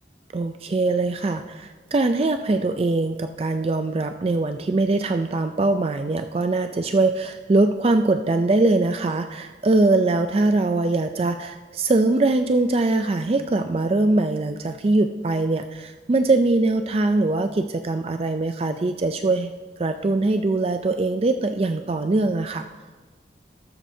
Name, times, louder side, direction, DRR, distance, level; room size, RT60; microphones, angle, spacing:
voice 1, 0.3-19.5 19.8-22.7, right 2 dB, 30° right, 7 dB, 0.3 m, -22 dB
14.0 x 12.5 x 2.7 m, 1.3 s
head